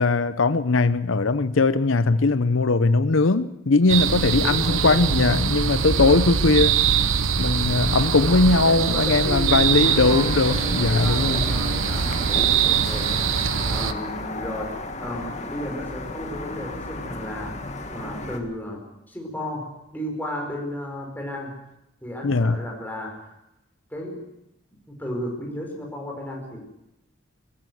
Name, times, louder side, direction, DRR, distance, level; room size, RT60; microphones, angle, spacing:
voice 1, 0.0-6.8 7.4-11.5 22.2-22.6, left 3 dB, 85° left, 14 dB, 0.8 m, -20 dB
sound 1, 3.9-13.9, right 7 dB, 90° right, 0.9 m, -23 dB
voice 2, 4.4-5.2 5.9-6.3 8.2-17.6 17.9-18.8 19.1-21.6 22.0-23.3 23.9-24.2 24.9-26.6, left 1 dB, 10° left, 0 dB, 5.1 m, -34 dB
sound 2, 9.8-18.4, left 2 dB, 35° left, 1.9 m, -34 dB
21.5 x 15.0 x 8.0 m, 0.88 s
head